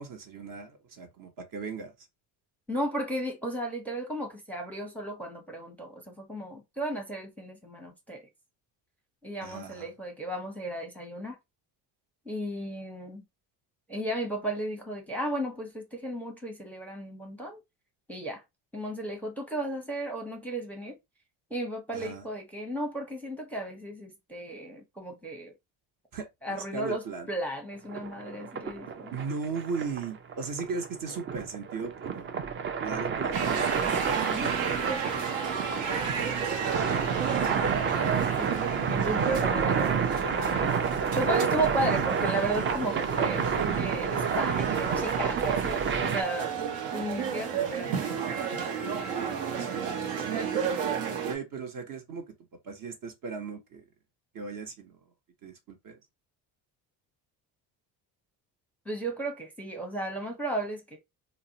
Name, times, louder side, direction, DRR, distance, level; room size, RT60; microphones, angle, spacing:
voice 1, 0.0-1.9 9.4-9.9 21.9-22.2 26.1-26.3 26.7-27.3 29.1-32.4 32.8-33.7 37.3-38.3 49.6-50.6 51.2-52.2 52.6-53.8 54.3-55.0 55.4-56.0, right 5 dB, 45° right, 0.8 m, -37 dB
voice 2, 2.7-8.3 9.2-11.4 12.3-13.2 13.9-17.6 18.1-18.4 18.7-20.9 21.5-25.5 26.4-29.2 33.8-36.0 37.5-40.7 41.1-46.6 46.9-48.5 58.9-61.0, right 1 dB, 5° left, 0.6 m, -35 dB
sound 1, 27.9-46.2, right 6 dB, 30° right, 0.3 m, -29 dB
sound 2, 33.3-51.4, right 7 dB, 75° right, 0.8 m, -33 dB
2.6 x 2.1 x 2.7 m
supercardioid pair, 80°, 45 cm